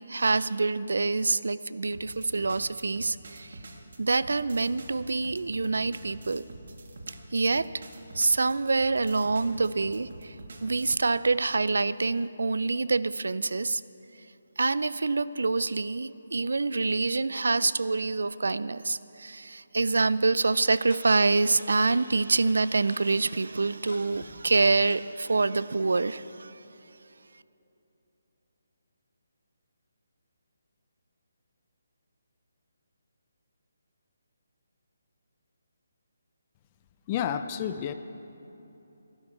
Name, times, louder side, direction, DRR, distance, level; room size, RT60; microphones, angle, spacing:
voice 1, 0.0-3.6 4.0-6.4 7.3-7.7 8.1-10.4 10.6-13.8 14.6-26.6, right 3 dB, 85° right, 17 dB, 0.4 m, -26 dB
sound 1, 1.9-11.0, right 2 dB, 60° right, 1.5 m, -46 dB
Tick-tock, 20.9-21.0 21.9-22.0 22.2-22.3 22.6-23.0 23.9-24.3 24.9-25.0 25.4-25.5 25.8-25.9, left 3 dB, 85° left, 2.1 m, -48 dB
voice 2, 37.1-37.9, left 9 dB, 20° left, 10 dB, 0.4 m, -30 dB
16.0 x 12.0 x 4.5 m, 3.0 s
hypercardioid pair, 170°, 0 cm